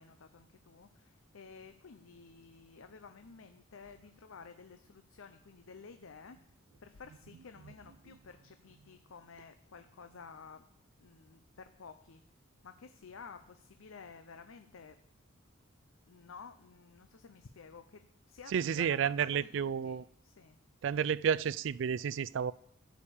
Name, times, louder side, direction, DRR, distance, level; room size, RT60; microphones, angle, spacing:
voice 1, 0.0-6.4 6.8-10.6 11.0-12.2 12.6-15.0 16.1-18.0 18.3-20.0 20.2-20.6, left 5 dB, 75° left, 9 dB, 0.6 m, -52 dB
voice 2, 18.5-20.0 20.8-22.5, right 7 dB, 60° right, 20 dB, 0.3 m, -31 dB
14.0 x 5.2 x 7.1 m, 0.69 s
head